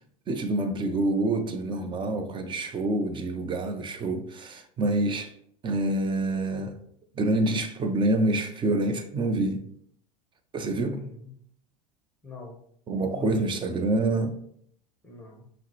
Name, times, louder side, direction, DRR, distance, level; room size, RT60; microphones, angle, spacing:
voice 1, 0.3-5.3 5.6-6.8 7.2-9.6 10.5-11.0 12.9-14.4, right 2 dB, 25° right, 0.5 m, -27 dB
voice 2, 10.8-11.4 12.2-12.6 13.1-13.8 15.0-15.5, left 3 dB, 10° left, 0.9 m, -41 dB
5.5 x 2.1 x 3.0 m
hypercardioid pair, 90°, 19 cm